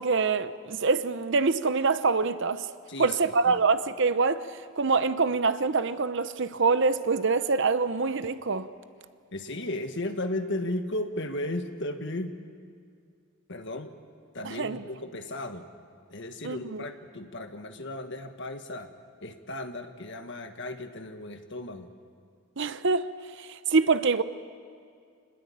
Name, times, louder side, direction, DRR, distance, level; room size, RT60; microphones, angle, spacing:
voice 1, 0.0-2.7 3.0-4.5 4.8-8.7 14.4-14.8 16.4-16.8 22.6-23.1 23.4-24.2, right 4 dB, 55° right, 0.8 m, -25 dB
voice 2, 2.9-3.6 9.3-12.4 13.5-14.0 14.3-15.7 16.1-18.9 19.2-21.9, left 1 dB, 55° left, 1.6 m, -35 dB
26.5 x 20.5 x 8.7 m
head